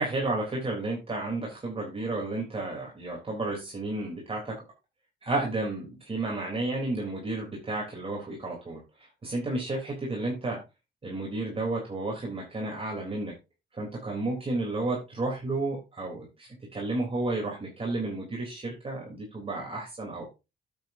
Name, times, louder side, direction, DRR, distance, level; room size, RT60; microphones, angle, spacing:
voice 1, 0.0-4.5 5.2-10.6 11.0-13.3 13.7-20.2, right 2 dB, 30° right, -2 dB, 3.4 m, -32 dB
10.5 x 8.0 x 2.7 m, 0.26 s
cardioid pair, 90°, 20 cm